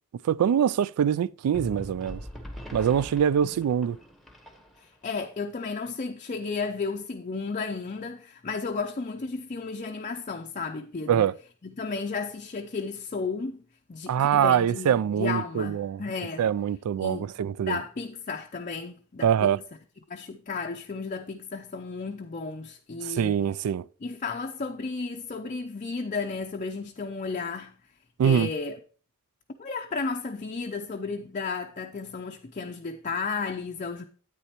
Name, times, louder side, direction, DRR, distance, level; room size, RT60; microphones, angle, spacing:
voice 1, 0.2-2.2 2.7-4.0 11.1-11.3 14.1-16.0 16.4-17.8 19.2-19.6 23.1-23.8 28.2-28.5, right 8 dB, 90° right, 0.3 m, -24 dB
sound 1, 1.5-5.1, equal, ahead, 1.0 m, -42 dB
voice 2, 4.8-11.3 11.6-13.6 13.9-16.4 17.0-17.3 17.6-19.5 20.1-23.4 24.0-27.8 28.2-28.8 29.6-34.0, left 4 dB, 35° left, 0.5 m, -33 dB
9.8 x 8.8 x 2.9 m
head